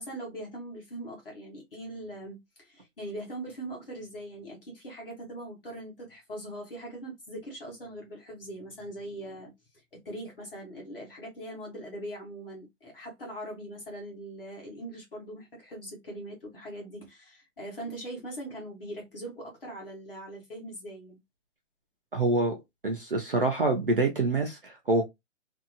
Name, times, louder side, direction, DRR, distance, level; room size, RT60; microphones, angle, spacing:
voice 1, 0.0-21.2, right 1 dB, 45° left, 1.1 m, -41 dB
voice 2, 22.1-22.6 22.8-25.0, right 2 dB, 45° right, 0.5 m, -26 dB
2.7 x 2.3 x 2.5 m
hypercardioid pair, 180°, 39 cm